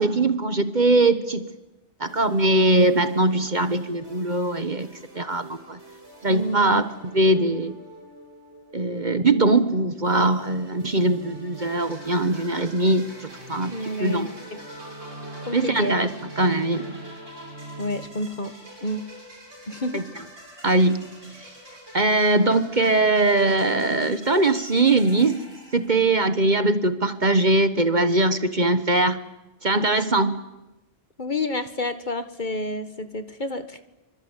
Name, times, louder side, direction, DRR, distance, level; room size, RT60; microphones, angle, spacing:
voice 1, 0.0-1.4 2.0-5.8 6.2-7.7 8.7-13.1 13.5-14.3 15.5-16.1 16.4-17.0 19.9-20.0 20.6-21.4 21.9-25.4 25.7-29.2 29.6-30.4, right 2 dB, 40° right, 10 dB, 1.3 m, -21 dB
sound 1, 2.0-18.1, right 1 dB, 60° right, 5.7 m, -45 dB
voice 2, 6.3-6.8 13.7-14.3 15.5-16.0 17.8-18.5 18.8-19.0 19.7-20.0 31.2-33.8, left 1 dB, 40° left, 9 dB, 1.7 m, -29 dB
sound 2, 11.6-26.4, right 1 dB, 80° right, 7.5 m, -45 dB
27.5 x 24.5 x 8.2 m, 1.0 s
omnidirectional pair, 1.3 m